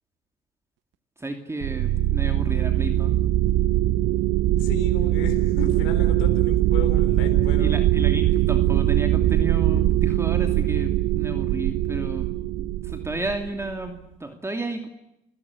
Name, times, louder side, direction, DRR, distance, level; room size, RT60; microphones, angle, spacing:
voice 1, 1.2-3.2 7.6-12.3 12.5-14.9, right 2 dB, 10° right, 6 dB, 2.8 m, -32 dB
sound 1, 1.6-13.9, right 14 dB, 60° right, 1.1 m, -22 dB
voice 2, 4.6-7.7, left 7 dB, 70° left, 5 dB, 4.2 m, -34 dB
28.5 x 17.0 x 9.8 m, 0.86 s
supercardioid pair, 85°, 21 cm